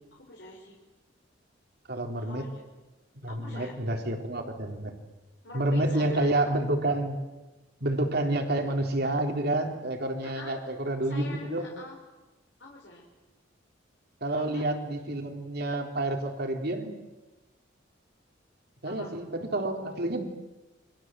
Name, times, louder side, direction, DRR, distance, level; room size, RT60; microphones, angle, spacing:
voice 1, 0.1-0.8 2.2-2.6 3.3-3.7 5.4-6.4 10.2-10.6 11.0-12.0 12.6-13.0 14.3-14.6 18.8-19.1, left 2 dB, 65° left, -1 dB, 5.1 m, -43 dB
voice 2, 1.9-2.5 3.2-4.9 5.5-7.2 7.8-11.7 14.2-17.0 18.8-20.2, right 1 dB, 60° right, 4 dB, 3.8 m, -29 dB
29.5 x 25.0 x 7.7 m, 1.1 s
head